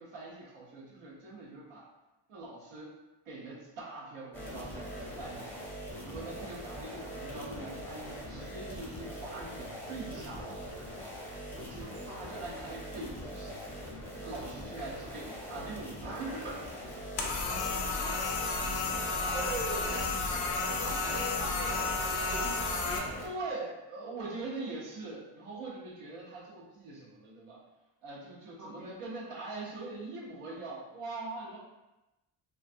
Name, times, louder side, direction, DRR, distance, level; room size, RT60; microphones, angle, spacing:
voice 1, 0.0-1.9 2.3-3.0 3.3-5.6 6.0-10.5 11.5-13.6 14.2-16.7 19.3-19.9 23.2-27.6 28.0-31.6, right 3 dB, 85° right, -5 dB, 0.9 m, -42 dB
sound 1, 4.3-23.3, equal, 5° left, 0.5 m, -42 dB
sound 2, 17.2-23.0, left 4 dB, 85° left, 0.6 m, -32 dB
voice 2, 17.6-18.4 18.7-18.9 19.2-19.4 19.9-20.1 20.7-23.1 28.6-28.9, right 1 dB, 40° right, -4 dB, 0.8 m, -44 dB
2.4 x 2.3 x 2.5 m, 1.0 s
cardioid pair, 100°, 50 cm